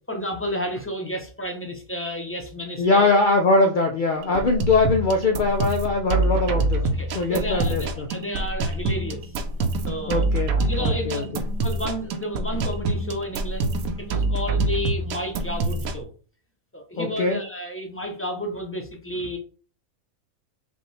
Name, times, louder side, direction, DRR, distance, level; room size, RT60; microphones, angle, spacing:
voice 1, 0.1-3.2 4.2-4.5 6.8-9.3 9.8-11.3 11.6-16.1 16.7-19.4, equal, 15° left, 2 dB, 0.5 m, -32 dB
voice 2, 2.8-8.1 10.1-11.2 17.0-17.4, left 3 dB, 80° left, 3 dB, 0.4 m, -22 dB
sound 1, 4.2-16.0, right 2 dB, 85° right, 1.0 m, -26 dB
5.2 x 2.4 x 3.2 m, 0.40 s
omnidirectional pair, 1.5 m